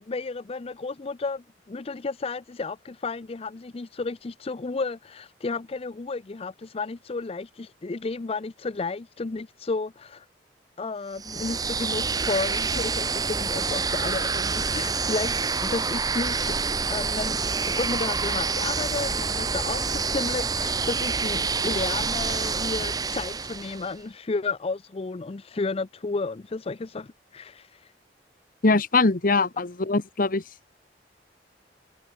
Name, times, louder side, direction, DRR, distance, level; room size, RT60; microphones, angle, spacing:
voice 1, 0.0-10.3 10.8-16.5 16.9-17.4 17.7-27.9, left 3 dB, 35° left, 0.5 m, -32 dB
sound 1, 11.1-23.9, right 4 dB, 20° right, 0.9 m, -27 dB
voice 2, 28.6-30.4, left 3 dB, 55° left, 1.2 m, -22 dB
head